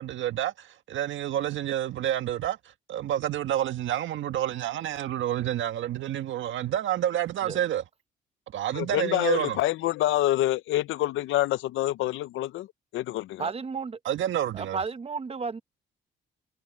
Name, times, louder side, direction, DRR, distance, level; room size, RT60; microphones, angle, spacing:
voice 1, 0.0-2.6 2.9-7.8 8.5-9.6 14.0-14.8, right 11 dB, 75° right, 1.6 m, -29 dB
voice 2, 8.7-12.7 12.9-13.5, left 15 dB, 80° left, 0.6 m, -26 dB
voice 3, 13.4-14.0 14.5-15.6, right 5 dB, 30° right, 1.1 m, -33 dB
cardioid pair, 90°, 20 cm